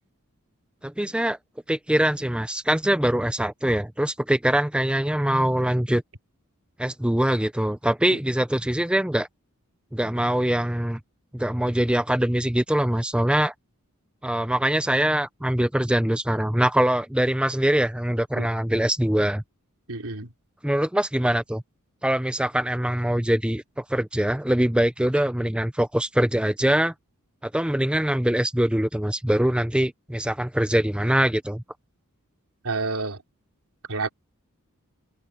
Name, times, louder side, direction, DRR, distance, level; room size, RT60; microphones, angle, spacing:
voice 1, 0.8-1.4 1.7-6.0 6.8-9.3 9.9-11.0 11.3-13.5 14.2-19.4 20.6-21.6 22.0-26.9 27.4-31.6, right 1 dB, 5° right, 0.6 m, -23 dB
voice 2, 19.9-20.3 32.6-33.2 33.9-34.1, right 3 dB, 75° right, 3.7 m, -29 dB
head